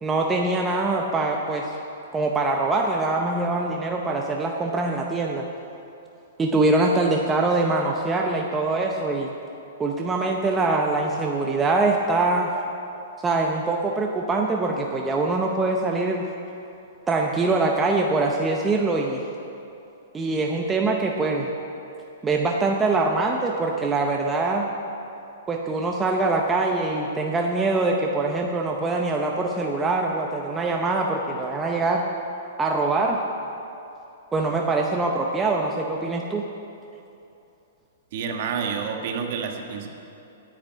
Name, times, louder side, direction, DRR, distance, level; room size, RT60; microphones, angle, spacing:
voice 1, 0.0-1.8 2.1-5.4 6.4-9.3 9.8-12.5 13.2-16.3 17.1-19.2 20.1-21.5 22.2-24.7 25.5-32.0 32.6-33.2 34.3-36.4, right 3 dB, 10° right, 0 dB, 0.7 m, -23 dB
voice 2, 38.1-39.9, right 6 dB, 45° right, 3 dB, 1.5 m, -29 dB
10.0 x 8.9 x 8.9 m, 2.8 s
hypercardioid pair, 160°, 0 cm